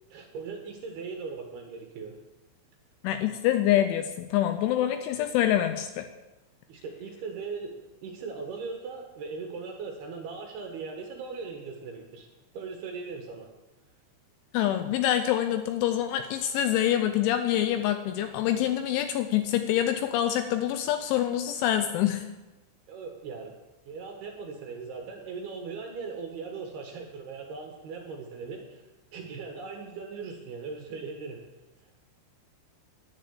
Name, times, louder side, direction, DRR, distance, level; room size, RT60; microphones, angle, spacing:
voice 1, 0.1-2.1 6.7-12.3 12.5-13.5 22.9-23.5 23.9-28.8 29.1-31.4, right 4 dB, 65° right, 2 dB, 2.8 m, -39 dB
voice 2, 3.0-6.1 14.5-22.3, left 11 dB, 80° left, 8 dB, 2.9 m, -26 dB
11.0 x 10.0 x 8.2 m, 1.1 s
omnidirectional pair, 6.0 m